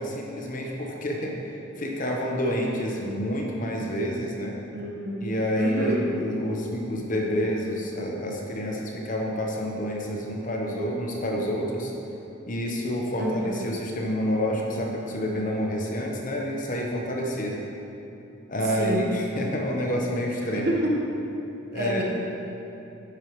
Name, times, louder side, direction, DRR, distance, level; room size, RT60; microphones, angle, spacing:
voice 1, 0.0-4.6 5.2-11.9 12.5-17.6 18.5-20.7 21.7-22.0, equal, 40° left, -1 dB, 1.0 m, -28 dB
voice 2, 4.7-5.3 5.6-6.1 13.2-13.6 18.8-19.0 20.5-21.0 21.7-22.0, equal, 50° right, -2 dB, 1.2 m, -27 dB
10.0 x 8.2 x 3.1 m, 2.9 s
head